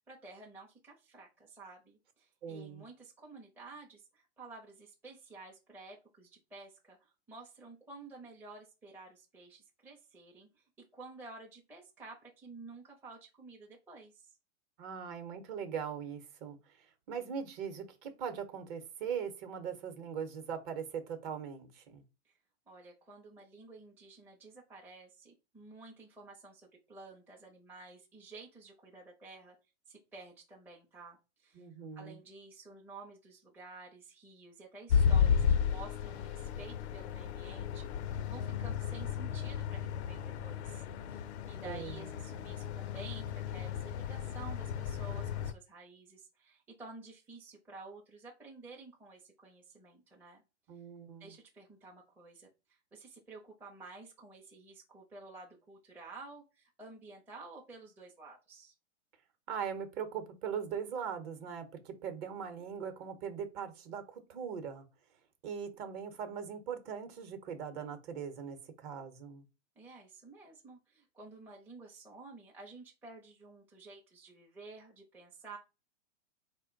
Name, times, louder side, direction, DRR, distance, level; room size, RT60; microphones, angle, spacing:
voice 1, 0.1-10.6 10.9-14.3 22.2-22.4 22.7-29.6 29.9-31.7 32.0-50.4 51.2-58.7 69.8-75.6, right 3 dB, 5° right, 0.6 m, -52 dB
voice 2, 2.4-2.8 14.8-22.0 31.5-32.2 41.6-42.1 50.7-51.3 59.5-64.8 65.4-69.4, right 7 dB, 35° right, 0.9 m, -40 dB
sound 1, 34.9-45.5, left 7 dB, 65° left, 0.5 m, -33 dB
4.3 x 2.2 x 3.8 m
hypercardioid pair, 130°, 36 cm